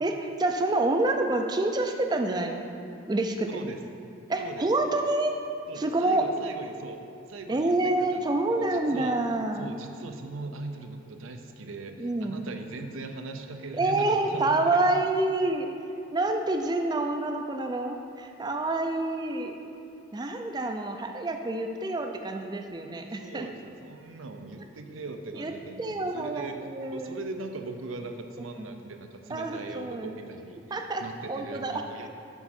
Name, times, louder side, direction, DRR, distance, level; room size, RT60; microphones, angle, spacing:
voice 1, 0.0-2.7 3.0-3.7 4.3-5.4 5.8-6.3 7.5-9.8 12.0-12.4 13.7-15.7 16.1-19.5 20.1-23.5 25.4-25.5 25.8-27.2 28.6-28.7 29.3-30.2 30.7-31.0 31.3-31.8, right 2 dB, 20° right, 5 dB, 0.4 m, -27 dB
voice 2, 5.7-7.0 7.3-9.2 9.6-14.9 23.2-26.6 26.9-32.1, right 3 dB, 80° right, 6 dB, 0.6 m, -40 dB
6.9 x 5.7 x 4.2 m, 2.6 s
head